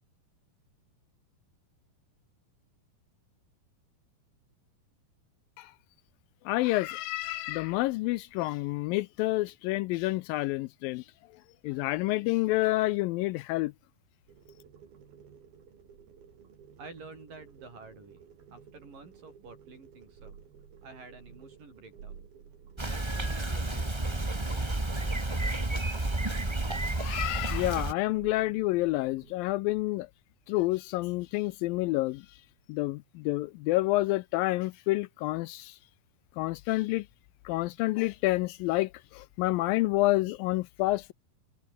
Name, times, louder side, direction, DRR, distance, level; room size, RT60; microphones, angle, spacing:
voice 1, 6.5-11.0 11.6-13.7 26.9-30.1 30.5-32.2 32.7-35.8 36.4-37.1 37.5-41.1, left 19 dB, 80° left, 2.2 m, -29 dB
sound 1, 14.3-29.3, right 7 dB, 80° right, 5.4 m, -53 dB
voice 2, 16.8-18.2 18.5-20.4 20.8-22.3 22.8-25.9, right 3 dB, 60° right, 9.4 m, -50 dB
Bicycle, 22.8-27.9, right 2 dB, 20° right, 0.7 m, -31 dB
omnidirectional pair, 4.3 m